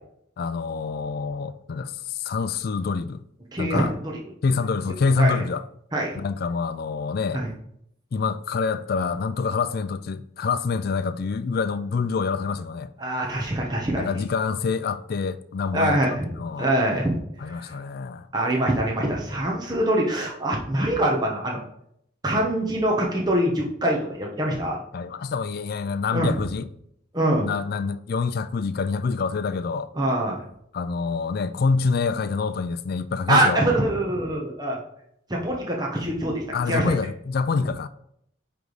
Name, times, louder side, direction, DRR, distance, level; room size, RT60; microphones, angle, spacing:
voice 1, 0.4-3.2 3.6-3.9 4.4-5.6 6.2-7.4 8.1-12.9 14.0-16.7 17.4-18.3 24.9-26.7 27.4-29.9 30.7-33.6 36.5-37.9, left 4 dB, 50° left, 0.3 m, -26 dB
voice 2, 3.5-4.2 5.2-5.4 5.9-6.2 7.3-7.5 13.0-14.1 15.7-16.3 16.6-17.1 17.5-17.7 18.3-21.6 22.2-24.8 26.1-26.4 27.1-27.5 30.0-30.4 33.3-34.8 35.3-36.9, right 1 dB, 20° right, 1.0 m, -24 dB
9.5 x 3.4 x 4.0 m
head